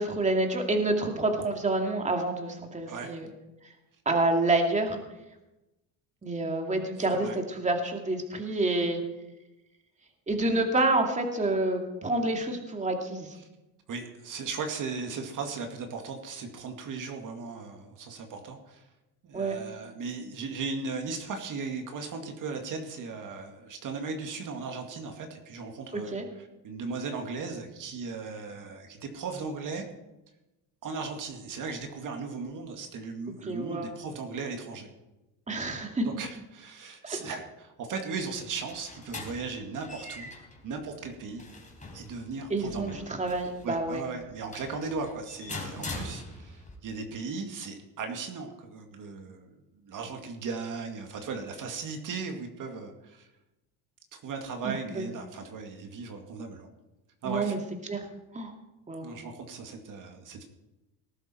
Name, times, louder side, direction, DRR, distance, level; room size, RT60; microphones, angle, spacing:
voice 1, 0.0-3.3 4.1-5.0 6.2-9.0 10.3-13.4 19.3-19.6 25.9-26.3 33.4-33.9 35.5-36.1 37.0-37.2 42.5-44.0 54.6-55.1 57.2-57.6 57.9-58.1 58.3-58.5 58.9-59.1, right 2 dB, 15° right, 3 dB, 2.5 m, -28 dB
voice 2, 13.9-18.8 19.2-29.8 30.8-34.9 36.0-40.3 40.6-41.4 41.9-43.0 43.6-49.5 49.8-53.3 54.1-56.7 57.2-57.5 59.0-60.4, right 4 dB, 50° right, 4 dB, 2.3 m, -37 dB
school locker, 38.3-46.7, left 2 dB, 20° left, 4.0 m, -43 dB
19.0 x 11.5 x 4.5 m, 0.99 s
cardioid pair, 110°, 40 cm